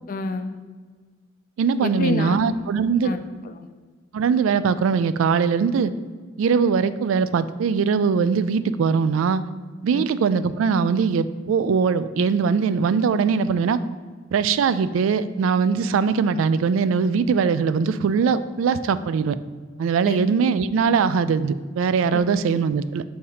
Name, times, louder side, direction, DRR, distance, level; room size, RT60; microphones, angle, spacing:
voice 1, 0.1-0.6 1.8-2.4 3.0-3.7 9.9-10.1 20.0-20.3 22.1-22.2, left 3 dB, 45° left, 9 dB, 0.4 m, -28 dB
voice 2, 1.6-3.1 4.1-5.9 6.4-9.4 9.8-13.8 14.3-19.4 19.8-23.0, right 5 dB, 75° right, 14 dB, 0.3 m, -21 dB
6.5 x 2.8 x 5.5 m, 1.5 s
head